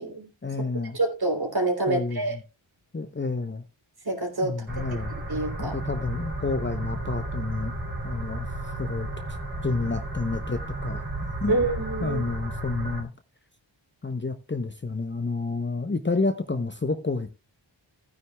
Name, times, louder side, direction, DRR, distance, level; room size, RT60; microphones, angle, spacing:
voice 1, 0.4-1.0 1.9-2.4 2.9-3.6 4.4-5.1 5.6-9.1 9.6-11.0 11.4-11.5 12.0-13.1 14.0-17.3, left 3 dB, 25° left, 0.8 m, -30 dB
voice 2, 0.9-2.3 4.0-4.5 5.1-5.8 11.5-12.2, right 2 dB, 50° right, 3.3 m, -27 dB
sound 1, 4.7-13.0, right 2 dB, 25° right, 3.1 m, -33 dB
15.5 x 9.5 x 2.3 m
wide cardioid pair, 70°, 48 cm